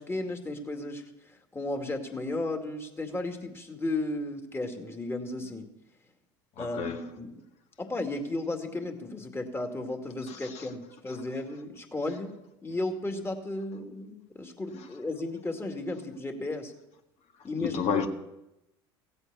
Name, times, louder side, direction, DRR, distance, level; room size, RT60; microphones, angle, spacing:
voice 1, 0.0-5.7 6.6-7.3 7.8-12.4 12.6-16.7 17.4-18.1, left 2 dB, 20° left, 2.3 m, -34 dB
voice 2, 6.6-7.1 10.3-10.7 17.6-18.1, left 7 dB, 55° left, 1.7 m, -31 dB
16.0 x 8.2 x 7.0 m
hypercardioid pair, 75°, 13 cm